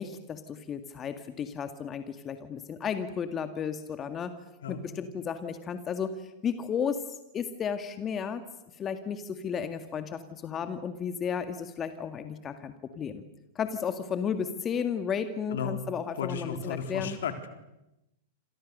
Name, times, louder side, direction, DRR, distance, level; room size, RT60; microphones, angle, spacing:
voice 1, 0.0-4.3 4.7-7.0 7.3-8.4 8.8-13.3 13.6-17.2, left 7 dB, 25° left, 9 dB, 2.0 m, -33 dB
voice 2, 15.5-15.9 16.2-17.5, left 7 dB, 65° left, 7 dB, 3.9 m, -34 dB
28.5 x 27.5 x 6.7 m, 0.93 s
hypercardioid pair, 105°, 0 cm